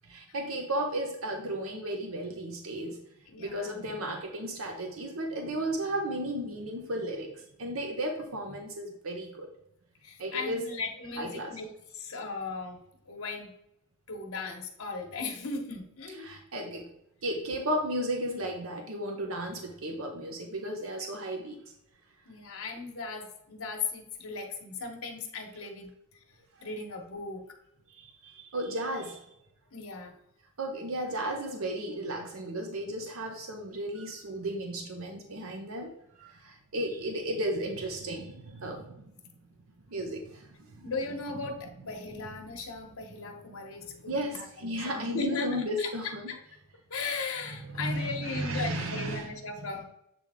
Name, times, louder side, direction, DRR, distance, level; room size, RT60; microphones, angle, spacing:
voice 1, 0.0-3.0 3.4-9.5 10.2-10.7 11.2-11.5 16.2-16.9 17.2-21.6 26.6-26.7 27.9-29.3 30.6-35.9 36.2-39.0 39.9-40.9 44.1-46.3 47.6-49.3, right 1 dB, 70° right, 3 dB, 0.8 m, -34 dB
voice 2, 3.3-3.9 10.0-12.8 13.1-13.5 14.1-16.4 22.3-25.9 26.6-27.4 29.7-30.1 40.8-46.4 46.9-49.8, left 4 dB, 75° left, 1 dB, 1.0 m, -37 dB
7.7 x 3.5 x 3.5 m, 0.81 s
head